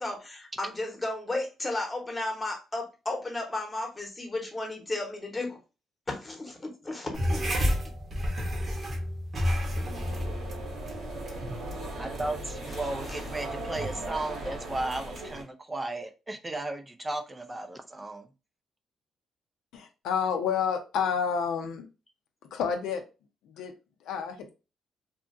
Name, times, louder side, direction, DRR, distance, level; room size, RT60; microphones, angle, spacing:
voice 1, 0.0-5.6 6.1-7.7 13.1-13.3, left 2 dB, 20° left, 2 dB, 0.9 m, -34 dB
sound 1, 7.1-14.0, equal, 45° right, 0.8 m, -32 dB
sound 2, 9.4-15.4, right 2 dB, 85° right, 1.3 m, -38 dB
voice 2, 12.0-18.3, right 2 dB, 20° right, 7 dB, 0.3 m, -35 dB
voice 3, 19.7-21.9 22.5-23.0 23.4-23.7 24.0-24.5, left 7 dB, 85° left, 5 dB, 0.5 m, -29 dB
2.7 x 2.4 x 2.4 m, 0.30 s
cardioid pair, 90°, 0 cm